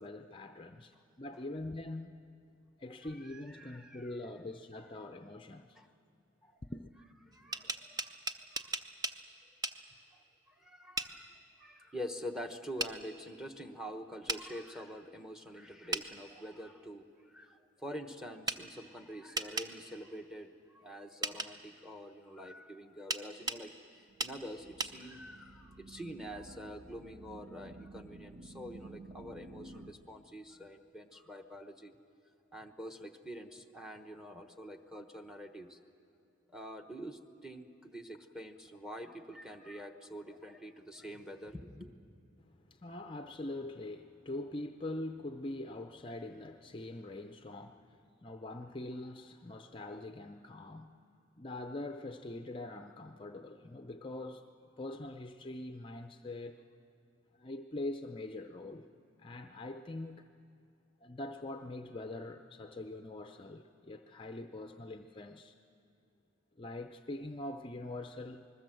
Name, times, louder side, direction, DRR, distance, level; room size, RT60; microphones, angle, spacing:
voice 1, 0.0-2.2 2.8-5.8 6.6-6.9 42.4-51.0 51.4-54.4 54.8-56.6 57.3-58.9 59.2-60.3 61.0-65.6 66.6-68.4, left 2 dB, 25° left, 6 dB, 0.5 m, -43 dB
voice 2, 3.0-4.5 5.7-5.9 6.4-6.6 7.3-8.2 8.5-8.8 10.1-31.9 32.5-35.8 36.5-41.9, equal, 5° right, 7 dB, 1.1 m, -46 dB
sound 1, 7.3-9.2 9.6-9.8 11.0-11.1 12.8-12.9 14.3-14.4 15.9-16.1 18.5-18.6 19.4-19.7 21.2-21.5 23.1-23.6 24.2-24.4 24.8-24.9, right 2 dB, 20° right, 0.7 m, -35 dB
sound 2, 23.3-29.9, right 2 dB, 90° right, 1.2 m, -52 dB
27.0 x 20.5 x 7.7 m, 2.8 s
head